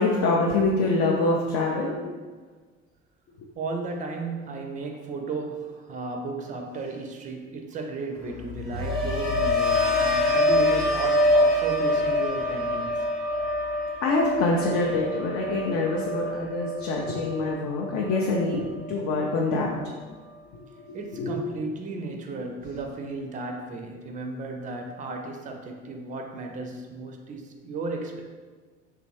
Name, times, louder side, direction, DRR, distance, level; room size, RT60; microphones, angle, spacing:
voice 1, 0.0-2.0 14.0-19.8 21.2-21.4, left 2 dB, 50° left, -2 dB, 0.6 m, -25 dB
voice 2, 3.6-13.0 20.9-28.2, right 3 dB, 20° right, 4 dB, 0.4 m, -34 dB
sound 1, 8.3-18.4 18.8-19.2, left 1 dB, ahead, 0.8 m, -25 dB
3.3 x 2.4 x 3.2 m, 1.4 s
figure-of-eight pair, 60°, 37 cm